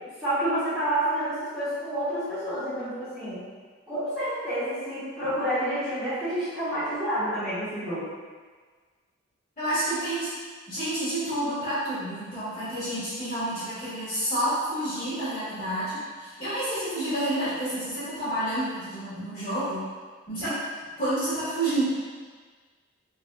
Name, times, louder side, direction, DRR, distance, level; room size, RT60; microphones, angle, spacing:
voice 1, 0.2-3.4 3.9-8.0 20.4-20.5, right 1 dB, 5° right, -18 dB, 1.2 m, -29 dB
voice 2, 9.6-10.3 10.7-19.8 20.3-20.5 21.0-21.8, right 1 dB, 40° left, -16 dB, 1.4 m, -29 dB
3.9 x 2.6 x 2.2 m, 1.5 s
head